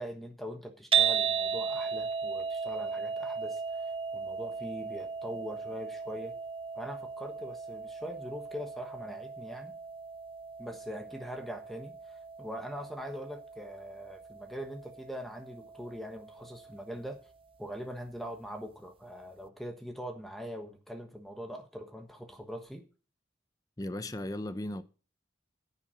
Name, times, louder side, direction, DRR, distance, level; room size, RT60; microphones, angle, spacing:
voice 1, 0.0-6.3 6.7-9.7 10.6-17.2 17.6-22.8, equal, ahead, 1.3 m, -42 dB
sound 1, 0.9-17.1, right 6 dB, 30° right, 0.5 m, -36 dB
voice 2, 23.8-24.8, left 1 dB, 20° left, 0.7 m, -36 dB
10.5 x 9.1 x 5.1 m
head